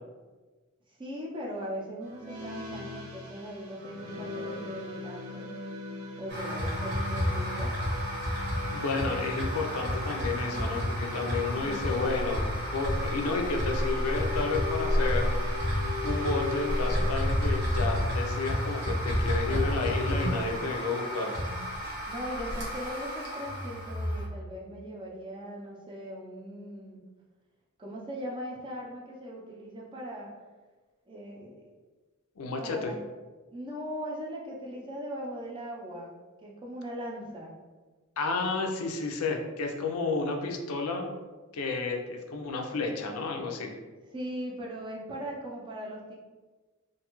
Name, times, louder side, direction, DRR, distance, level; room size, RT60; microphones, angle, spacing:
voice 1, 0.9-5.5 6.2-7.7 10.3-11.2 11.5-11.8 19.1-20.5 22.1-27.0 27.8-30.3 31.1-31.7 32.6-33.0 33.5-36.1 36.4-37.5 44.1-46.1, equal, 20° right, -4 dB, 0.5 m, -39 dB
sound 1, 2.0-17.1, left 4 dB, 75° right, 0.5 m, -40 dB
sound 2, 6.3-24.3, equal, 50° right, 0.8 m, -30 dB
voice 2, 8.6-15.3 16.0-21.4 32.4-32.9 38.2-41.1 41.5-43.7, left 3 dB, 90° left, 3 dB, 0.4 m, -31 dB
2.5 x 2.3 x 2.9 m, 1.3 s
head